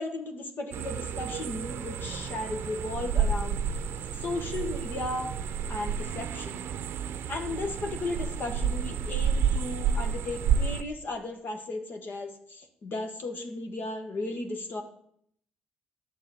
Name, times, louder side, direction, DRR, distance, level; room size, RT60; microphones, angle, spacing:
voice 1, 0.0-3.6 4.1-5.3 5.7-6.6 7.3-14.8, left 2 dB, 60° left, 3 dB, 1.5 m, -35 dB
sound 1, 0.7-10.8, right 6 dB, 75° right, 0.6 m, -30 dB
10.0 x 6.7 x 4.3 m, 0.69 s
supercardioid pair, 60°, 4 cm